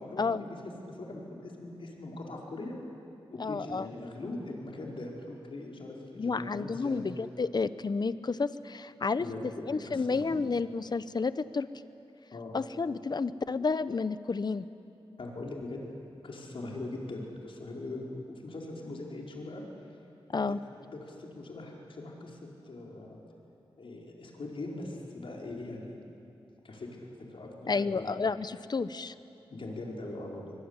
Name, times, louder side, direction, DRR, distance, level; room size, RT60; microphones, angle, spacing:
voice 1, 0.0-2.7 3.3-7.1 9.2-10.3 12.3-12.5 15.2-15.9 16.2-19.6 20.4-22.4 22.6-23.2 23.8-25.9 26.6-28.1 29.5-30.5, left 2 dB, 65° left, -1 dB, 5.0 m, -41 dB
voice 2, 3.4-3.9 6.2-9.2 9.7-11.7 12.5-14.6 20.3-20.6 27.7-29.1, left 4 dB, 50° left, 14 dB, 0.9 m, -31 dB
23.5 x 23.5 x 9.9 m, 2.8 s
wide cardioid pair, 80°, 10 cm